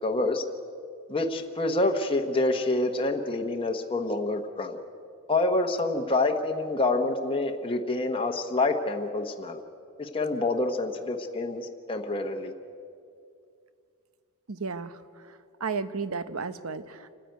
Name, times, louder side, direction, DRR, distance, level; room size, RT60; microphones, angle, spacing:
voice 1, 0.0-0.4 1.1-4.8 5.3-9.6 10.0-12.5, left 2 dB, 25° left, 3 dB, 1.0 m, -27 dB
voice 2, 14.5-17.1, right 4 dB, 65° right, 13 dB, 0.9 m, -34 dB
28.5 x 9.9 x 9.2 m, 2.4 s
head